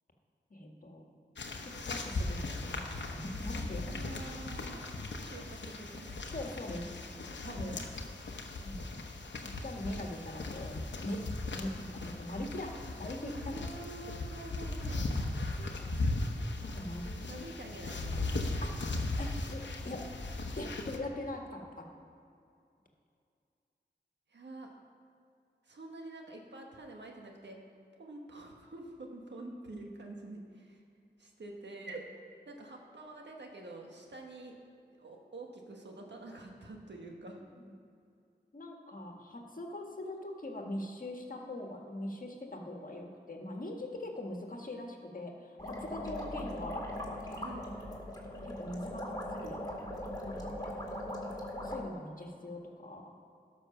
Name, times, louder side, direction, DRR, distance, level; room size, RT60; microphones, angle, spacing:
voice 1, 0.5-1.1 1.6-4.2 6.3-6.8 7.4-7.8 8.6-8.9 9.3-13.6 15.6-15.8 16.6-17.4 18.6-18.7 19.2-20.1 20.5-21.8 37.5-37.7 38.5-46.9 47.3-47.4 48.4-49.6 50.2-50.5 51.6-53.1, left 1 dB, 50° left, 1 dB, 1.7 m, -42 dB
sound 1, 1.4-21.0, left 2 dB, 85° left, 1.0 m, -38 dB
voice 2, 3.8-6.1 6.8-7.8 12.8-13.0 13.3-15.0 17.3-18.6 24.3-24.8 25.6-27.6 28.0-30.8 31.2-32.0 32.5-34.6 35.0-37.4 47.4-47.7, right 2 dB, 80° right, 1 dB, 1.5 m, -47 dB
sound 2, 45.6-51.8, left 1 dB, 20° left, 2.3 m, -40 dB
12.5 x 6.3 x 5.9 m, 2.5 s
cardioid pair, 45°, 18 cm